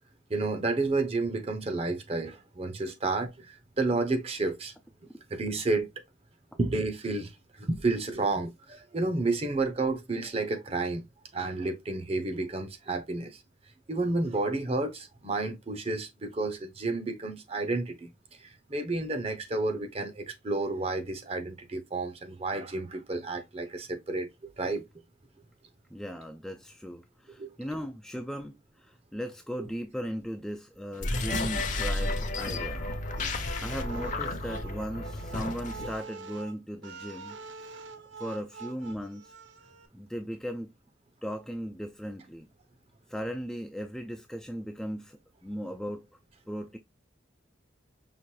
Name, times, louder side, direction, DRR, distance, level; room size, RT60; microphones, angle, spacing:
voice 1, 0.3-4.7 5.3-5.9 6.6-7.3 7.6-11.0 11.3-13.4 13.9-18.1 18.4-24.8 27.4-27.5 29.6-29.7 33.2-33.3, right 3 dB, 30° right, 0.7 m, -31 dB
voice 2, 25.9-32.9 33.2-37.8 38.2-39.3 39.9-40.7 41.2-42.5 43.1-46.1 46.5-46.8, equal, ahead, 0.3 m, -37 dB
sound 1, 30.9-36.0, left 2 dB, 40° left, 0.7 m, -32 dB
sound 2, 33.2-39.9, right 5 dB, 70° right, 0.7 m, -46 dB
5.7 x 2.5 x 3.1 m
head